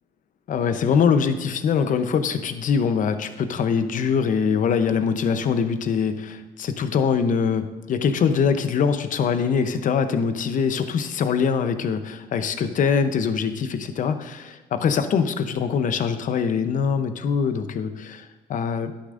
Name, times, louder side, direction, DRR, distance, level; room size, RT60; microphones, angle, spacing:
voice 1, 0.5-18.9, left 6 dB, 50° left, 10 dB, 0.8 m, -23 dB
11.5 x 9.9 x 2.6 m, 1.3 s
cardioid pair, 110°, 17 cm